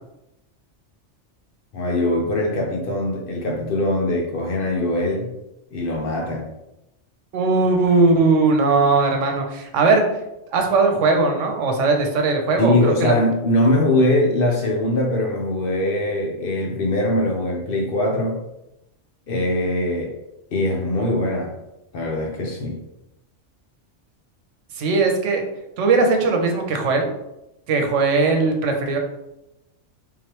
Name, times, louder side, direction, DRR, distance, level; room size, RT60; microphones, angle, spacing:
voice 1, 1.7-5.3 5.7-6.5 12.6-18.4 19.3-20.1 20.5-21.5 21.9-22.8, left 1 dB, 55° left, 1 dB, 0.8 m, -22 dB
voice 2, 7.3-10.0 10.5-13.1 24.7-25.5 25.8-27.1 27.7-29.0, right 3 dB, 90° right, 3 dB, 1.0 m, -19 dB
3.6 x 3.1 x 2.9 m, 0.89 s
omnidirectional pair, 1.2 m